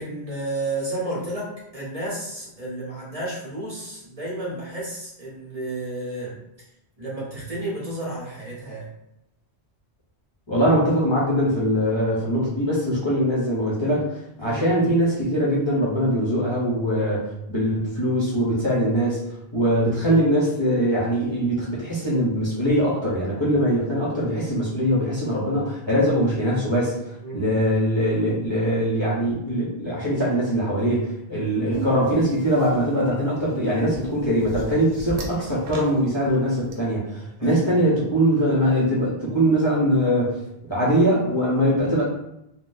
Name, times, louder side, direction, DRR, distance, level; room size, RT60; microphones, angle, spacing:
voice 1, 0.0-6.4 7.0-8.9 14.4-14.6 27.2-27.4 37.4-37.7, right 1 dB, 35° right, -5 dB, 0.9 m, -32 dB
voice 2, 10.5-17.2 17.5-19.2 19.5-40.3 40.7-42.0, equal, 30° left, -8 dB, 0.7 m, -22 dB
sound 1, 31.7-36.7, right 3 dB, 75° right, 0.9 m, -36 dB
3.7 x 2.2 x 2.5 m, 0.83 s
omnidirectional pair, 1.1 m